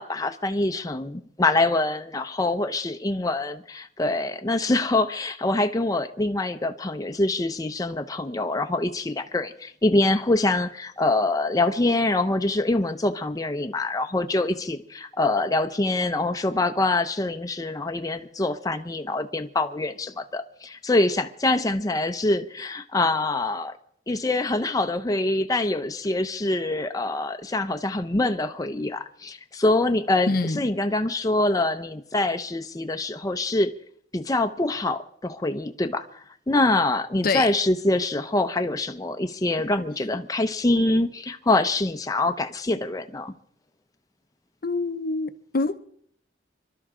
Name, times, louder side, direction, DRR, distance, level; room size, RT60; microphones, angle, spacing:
voice 1, 0.0-23.8 24.1-33.7 34.1-43.3, left 2 dB, 20° left, 0.6 m, -25 dB
voice 2, 30.3-30.6 37.2-37.5 44.6-45.8, left 3 dB, 55° left, 0.7 m, -25 dB
26.5 x 12.0 x 3.7 m
head